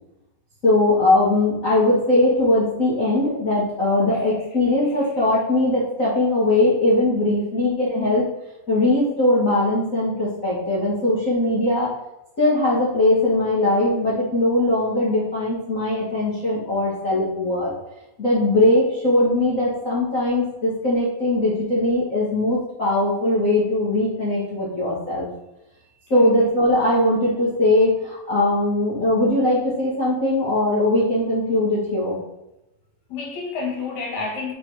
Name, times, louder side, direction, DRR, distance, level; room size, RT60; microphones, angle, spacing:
voice 1, 0.6-8.3 8.7-11.9 12.4-17.7 18.2-25.3 26.1-32.2, left 1 dB, 35° left, -8 dB, 1.4 m, -20 dB
voice 2, 7.5-7.8 26.1-26.3 33.1-34.5, left 4 dB, 60° left, -1 dB, 2.7 m, -30 dB
5.9 x 4.7 x 4.8 m, 0.91 s
omnidirectional pair, 4.1 m